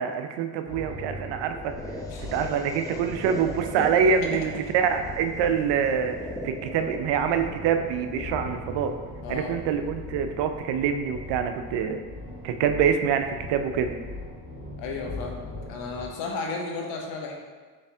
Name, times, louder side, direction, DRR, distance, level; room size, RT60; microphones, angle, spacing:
voice 1, 0.0-1.7 2.3-6.2 6.4-8.9 9.3-12.0 12.4-13.9, right 7 dB, 65° right, 7 dB, 0.6 m, -25 dB
sound 1, 0.7-16.1, left 2 dB, 50° left, 1.4 m, -40 dB
sound 2, 1.5-9.5, left 1 dB, 10° left, 0.7 m, -40 dB
voice 2, 9.2-9.5 14.8-17.3, left 4 dB, 75° left, 0 dB, 0.9 m, -34 dB
4.1 x 3.3 x 3.4 m, 1.5 s
hypercardioid pair, 60°, 45 cm